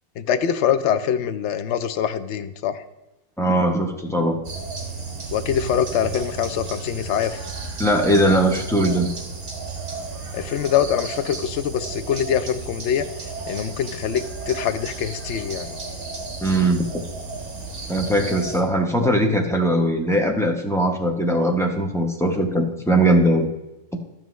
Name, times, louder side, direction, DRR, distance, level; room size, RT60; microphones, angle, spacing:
voice 1, 0.2-2.8 5.3-7.4 10.3-13.1 13.5-15.7, left 9 dB, 65° left, 10 dB, 0.7 m, -24 dB
voice 2, 3.4-4.4 7.8-9.1 16.4-16.9 17.9-23.5, right 1 dB, 5° left, 0 dB, 0.4 m, -20 dB
sound 1, 4.4-18.6, right 4 dB, 65° right, 1.9 m, -33 dB
12.5 x 7.4 x 3.1 m, 0.96 s
omnidirectional pair, 1.6 m